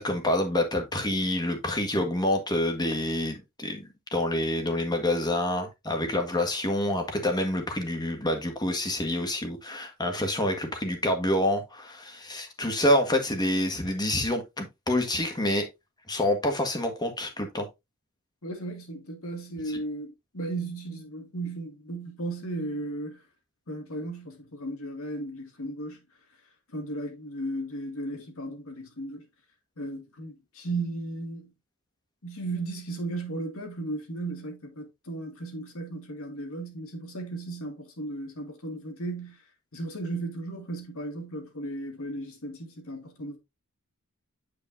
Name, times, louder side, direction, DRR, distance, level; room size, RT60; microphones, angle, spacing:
voice 1, 0.0-15.6 16.1-17.7, left 1 dB, 20° left, 1.6 m, -27 dB
voice 2, 18.4-23.2 23.7-26.0 26.7-29.2 29.8-31.5 32.2-39.4 39.7-43.4, right 2 dB, 65° left, 2.2 m, -35 dB
9.0 x 5.2 x 2.6 m
head